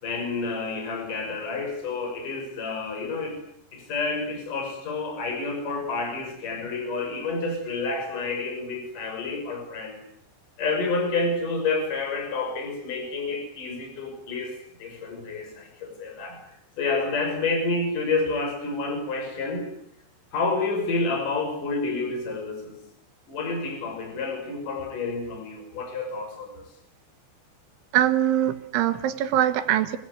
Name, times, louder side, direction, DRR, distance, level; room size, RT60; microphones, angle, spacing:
voice 1, 0.0-3.4 3.7-10.0 10.6-16.4 16.8-19.7 20.3-22.8 23.3-26.5, left 3 dB, 45° left, 3 dB, 7.4 m, -29 dB
voice 2, 27.9-30.0, right 12 dB, 85° right, 10 dB, 3.9 m, -22 dB
26.0 x 22.0 x 9.7 m, 0.74 s
omnidirectional pair, 5.3 m